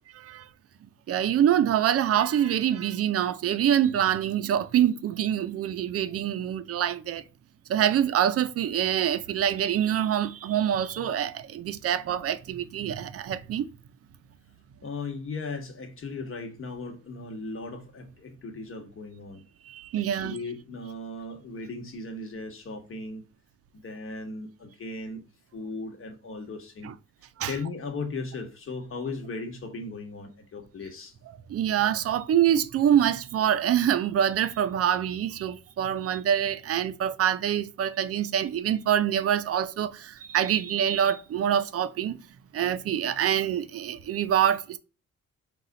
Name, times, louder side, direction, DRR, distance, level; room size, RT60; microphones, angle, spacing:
voice 1, 1.1-7.2 7.7-13.7 19.7-20.4 26.8-26.9 27.4-27.5 31.5-42.1 42.5-44.8, right 10 dB, 50° right, 0.5 m, -25 dB
voice 2, 14.8-19.5 19.9-23.2 23.7-25.2 25.5-26.9 27.5-31.1, left 3 dB, 45° left, 1.2 m, -37 dB
4.1 x 2.3 x 3.7 m
cardioid pair, 90°, 30 cm